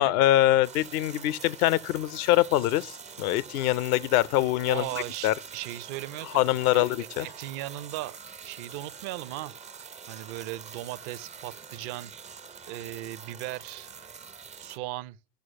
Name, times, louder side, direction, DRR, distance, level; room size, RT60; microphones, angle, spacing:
voice 1, 0.0-4.8 5.2-5.3 6.3-7.3, left 15 dB, 65° left, 0.6 m, -24 dB
sound 1, 0.6-14.8, right 6 dB, 15° right, 0.4 m, -45 dB
voice 2, 4.6-6.4 6.7-8.2 8.4-9.6 10.1-12.1 12.7-13.9 14.6-15.2, right 16 dB, 55° right, 0.7 m, -37 dB
14.0 x 6.1 x 2.9 m
figure-of-eight pair, 55°, 49 cm